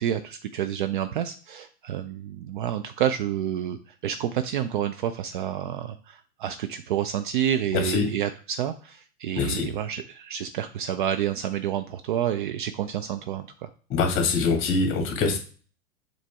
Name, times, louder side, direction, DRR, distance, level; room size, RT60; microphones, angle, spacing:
voice 1, 0.0-13.7, right 10 dB, 35° right, 9 dB, 0.5 m, -29 dB
voice 2, 13.9-15.4, left 4 dB, 30° left, 3 dB, 1.9 m, -24 dB
7.3 x 4.0 x 3.5 m, 0.40 s
hypercardioid pair, 110°, 43 cm